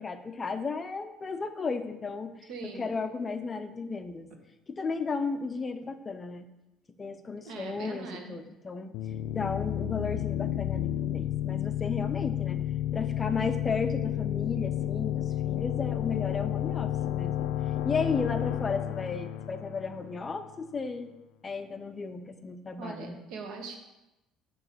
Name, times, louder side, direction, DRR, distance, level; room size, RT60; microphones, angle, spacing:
voice 1, 0.0-2.5 2.8-4.3 4.7-6.4 7.0-8.9 9.3-12.6 12.9-17.5 17.8-21.1 21.4-23.2, left 4 dB, 20° left, 9 dB, 0.5 m, -34 dB
voice 2, 2.5-2.9 7.4-8.4 22.8-23.8, right 4 dB, 65° right, 3 dB, 1.2 m, -41 dB
sound 1, 8.9-20.5, left 11 dB, 85° left, 0.3 m, -31 dB
7.7 x 3.0 x 5.9 m, 0.96 s
cardioid pair, 150°, 0 cm